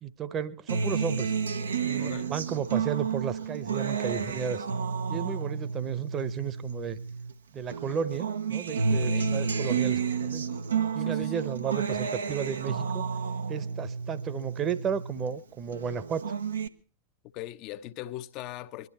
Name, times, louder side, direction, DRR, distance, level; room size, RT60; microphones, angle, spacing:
voice 1, 0.0-1.3 1.8-4.7 5.1-7.0 7.5-10.4 10.9-13.1 13.5-16.2, right 7 dB, 30° right, 1.1 m, -33 dB
Acoustic guitar, 0.7-7.3 7.7-15.3 15.7-16.7, right 6 dB, 70° right, 0.9 m, -31 dB
voice 2, 8.9-9.3 11.0-11.3 17.3-18.9, left 14 dB, 40° left, 0.8 m, -40 dB
23.0 x 12.0 x 4.3 m
figure-of-eight pair, 90°, 0 cm